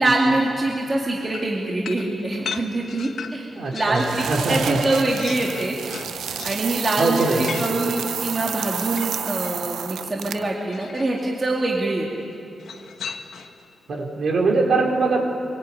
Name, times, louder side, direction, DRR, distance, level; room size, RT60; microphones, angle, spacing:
voice 1, 0.0-5.8 6.4-12.1, right 2 dB, 25° right, -2 dB, 2.6 m, -24 dB
sound 1, 1.3-4.2 4.6-9.6 10.7-11.3 12.6-13.7, left 6 dB, 70° left, 1.4 m, -38 dB
voice 2, 3.5-4.8 7.0-7.7 13.9-15.2, right 3 dB, 55° right, 0 dB, 4.8 m, -22 dB
sound 2, 4.0-10.6, right 8 dB, 85° right, 0.7 m, -30 dB
24.5 x 23.5 x 9.2 m, 2.6 s
wide cardioid pair, 145°, 0 cm